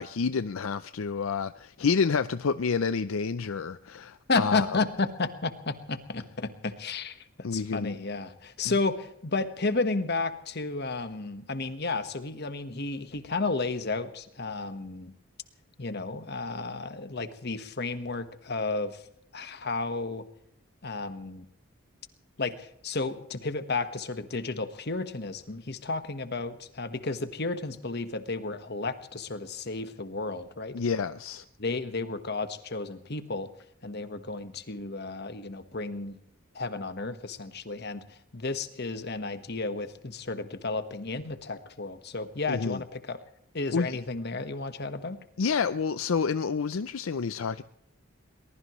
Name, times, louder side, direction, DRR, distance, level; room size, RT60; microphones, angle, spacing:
voice 1, 0.0-4.7 7.4-8.0 30.7-31.4 42.5-42.8 43.7-44.0 45.4-47.6, left 5 dB, 75° left, 0.5 m, -29 dB
voice 2, 4.3-15.1 15.8-19.0 19.3-20.3 20.8-21.5 22.4-30.8 31.6-33.5 33.8-36.2 36.5-43.2 43.5-45.2, left 3 dB, 50° left, 1.4 m, -32 dB
23.0 x 20.5 x 3.1 m
head